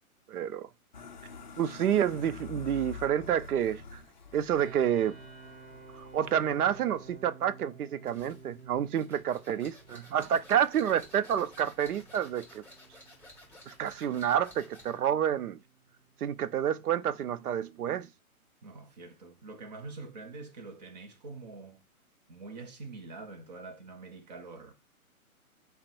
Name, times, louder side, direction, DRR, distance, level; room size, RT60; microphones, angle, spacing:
voice 1, 0.3-0.7 1.6-4.0 4.3-5.1 5.9-12.6 13.7-15.6 16.2-18.1, right 9 dB, 80° right, 0.5 m, -29 dB
sound 1, 0.9-7.2, left 6 dB, 35° left, 0.4 m, -47 dB
sound 2, 4.6-17.4, right 4 dB, 50° right, 1.1 m, -53 dB
sound 3, 8.0-15.0, left 1 dB, 5° right, 2.0 m, -54 dB
voice 2, 18.6-21.8 22.3-24.7, right 3 dB, 30° right, 0.6 m, -45 dB
3.5 x 2.1 x 4.3 m
hypercardioid pair, 140°, 43 cm